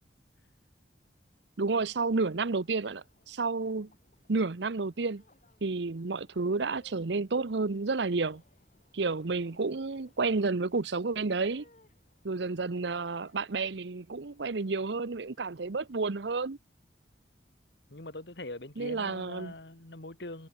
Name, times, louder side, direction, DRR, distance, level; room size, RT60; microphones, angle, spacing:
voice 1, 1.6-3.9 4.3-5.2 5.6-8.4 8.9-11.6 12.2-16.6 18.8-19.5, right 3 dB, 70° right, 0.8 m, -31 dB
sound 1, 1.8-16.2, left 1 dB, 40° left, 4.6 m, -66 dB
voice 2, 17.9-20.5, left 2 dB, 65° left, 2.4 m, -42 dB
head